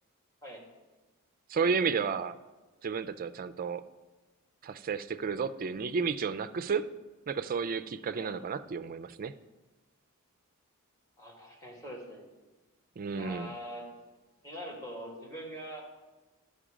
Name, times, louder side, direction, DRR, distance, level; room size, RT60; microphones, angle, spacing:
voice 1, 1.5-2.4 2.8-3.8 4.6-6.9 7.3-9.3 13.0-13.5, right 5 dB, 40° right, 13 dB, 0.4 m, -32 dB
voice 2, 11.2-12.3 13.1-13.9 14.4-15.8, equal, 15° left, -2 dB, 2.0 m, -43 dB
12.0 x 5.4 x 5.0 m, 1.2 s
head